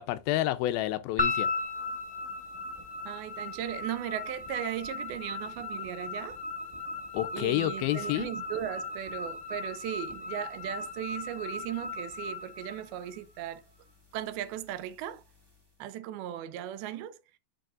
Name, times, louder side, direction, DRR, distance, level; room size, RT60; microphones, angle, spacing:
voice 1, 0.0-1.5 7.1-8.3, left 15 dB, 80° left, 2.3 m, -29 dB
sound 1, 1.2-13.5, left 3 dB, 30° right, 0.4 m, -36 dB
voice 2, 3.1-6.4 7.3-13.6 14.1-15.2 15.8-17.2, right 11 dB, 85° right, 2.5 m, -37 dB
9.1 x 5.8 x 2.4 m
omnidirectional pair, 4.4 m